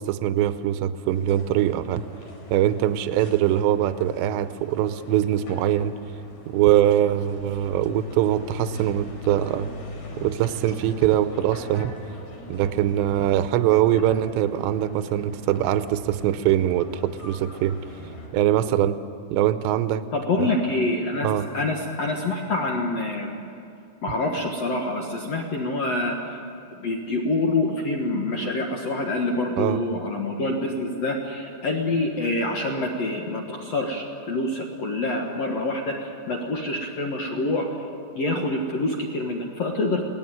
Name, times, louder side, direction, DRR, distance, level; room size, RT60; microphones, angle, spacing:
voice 1, 0.1-2.0 2.5-6.0 6.5-9.7 10.2-11.9 12.5-17.8 18.3-19.0 19.3-20.0 20.4-20.5 21.2-21.5 29.6-29.8, right 12 dB, 80° right, 11 dB, 2.8 m, -22 dB
sound 1, 1.1-18.3, left 2 dB, 60° left, 5.7 m, -42 dB
voice 2, 20.1-23.3 24.0-26.2 26.8-37.7 38.1-40.1, left 2 dB, 80° left, 1 dB, 1.4 m, -26 dB
23.0 x 18.0 x 9.2 m, 2.5 s
omnidirectional pair, 5.3 m